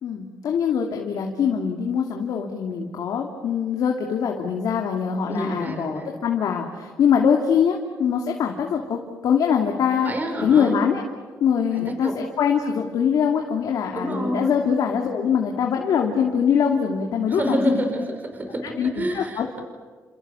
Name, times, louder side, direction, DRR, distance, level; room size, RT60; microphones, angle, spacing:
voice 1, 0.0-10.1 10.4-11.0 11.4-17.8 18.8-19.6, left 7 dB, 75° left, 2 dB, 2.7 m, -23 dB
voice 2, 5.3-6.2 9.9-10.8 11.7-12.2 13.9-14.6 17.3-19.6, equal, 30° right, 4 dB, 5.5 m, -28 dB
30.0 x 27.5 x 7.1 m, 1.5 s
cardioid pair, 110°, 6 cm